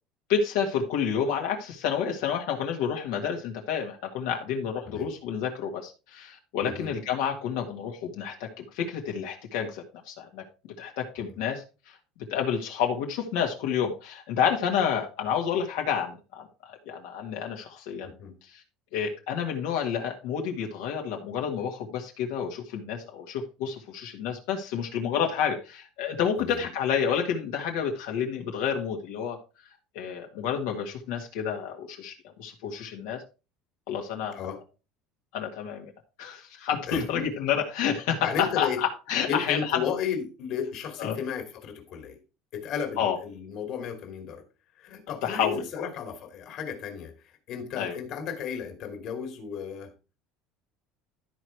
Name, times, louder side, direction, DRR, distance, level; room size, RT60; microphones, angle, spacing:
voice 1, 0.3-10.4 10.8-12.0 12.3-18.1 18.4-18.6 18.9-29.4 29.9-33.2 33.9-34.5 35.3-35.9 36.2-39.8 41.0-41.2 43.0-43.2 45.2-45.9 47.8-47.9, left 7 dB, 75° left, 1 dB, 1.8 m, -29 dB
voice 2, 6.6-6.9 11.2-11.4 18.0-18.3 26.4-26.7 34.4-34.6 36.9-37.2 38.2-38.8 39.3-42.2 42.5-44.4 44.8-47.1 47.5-49.9, left 7 dB, 45° left, 6 dB, 2.4 m, -34 dB
12.5 x 4.8 x 4.6 m, 0.31 s
cardioid pair, 170°, 0 cm